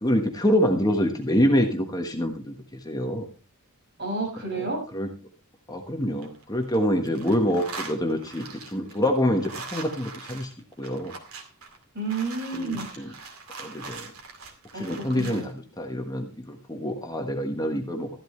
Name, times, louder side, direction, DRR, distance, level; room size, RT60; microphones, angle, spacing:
voice 1, 0.0-3.3 4.5-4.7 4.9-5.1 5.7-10.5 10.8-11.1 12.5-13.1 13.6-14.1 14.7-18.1, equal, 20° left, 4 dB, 1.3 m, -26 dB
voice 2, 4.0-4.8 11.9-13.2 14.7-15.4, right 3 dB, 50° right, 0 dB, 6.0 m, -31 dB
sound 1, 6.0-6.8 7.0-15.5, right 4 dB, 85° right, 2.3 m, -41 dB
14.0 x 12.0 x 3.2 m, 0.32 s
head